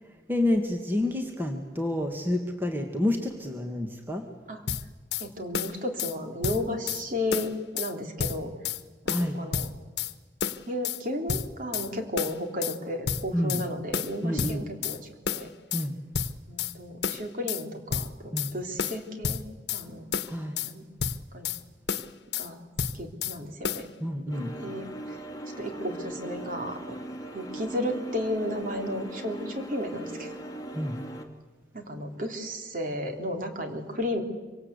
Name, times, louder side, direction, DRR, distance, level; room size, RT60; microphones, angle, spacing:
voice 1, 0.3-4.2 9.1-9.4 13.3-13.6 14.2-14.6 15.7-15.9 18.3-18.5 20.3-20.6 24.0-24.5 30.7-31.0, left 1 dB, 10° right, 3 dB, 1.9 m, -28 dB
sound 1, 4.7-5.3 5.5-6.2 6.4-7.0 7.3-7.9 8.2-8.8 9.1-10.1 10.4-11.0 11.3-11.9 12.2-12.8 13.1-13.7 13.9-15.0 15.3-15.9 16.1-16.7 17.0-17.6 17.9-18.5 18.8-19.8 20.1-20.7 21.0-21.6 21.9-22.5 22.8-23.4 23.6-23.9, left 7 dB, 75° left, 1.1 m, -30 dB
voice 2, 5.2-8.5 9.3-9.7 10.6-15.5 16.5-19.4 19.7-20.1 20.6-20.8 21.3-21.5 22.4-22.6 22.9-23.9 24.6-25.2 25.6-27.0 27.3-30.4 31.7-34.2, left 1 dB, 50° right, 4 dB, 3.4 m, -33 dB
sound 2, 24.3-31.3, right 1 dB, 20° left, 2.5 m, -39 dB
26.0 x 25.5 x 8.3 m, 1.3 s
head